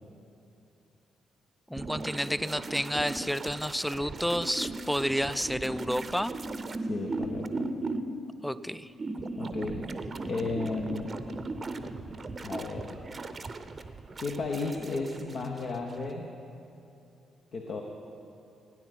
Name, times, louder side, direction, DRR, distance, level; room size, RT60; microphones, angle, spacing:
voice 1, 1.7-6.3 8.4-8.9, equal, ahead, 15 dB, 0.4 m, -30 dB
sound 1, 1.7-8.1 9.0-15.8 16.1-16.2, right 2 dB, 35° right, 0.8 m, -37 dB
voice 2, 6.9-7.7 9.4-9.9 10.2-11.1 12.4-13.0 14.2-16.4 17.5-17.8, left 3 dB, 50° left, 2 dB, 1.0 m, -34 dB
16.5 x 9.8 x 5.8 m, 2.7 s
figure-of-eight pair, 40°, 0 cm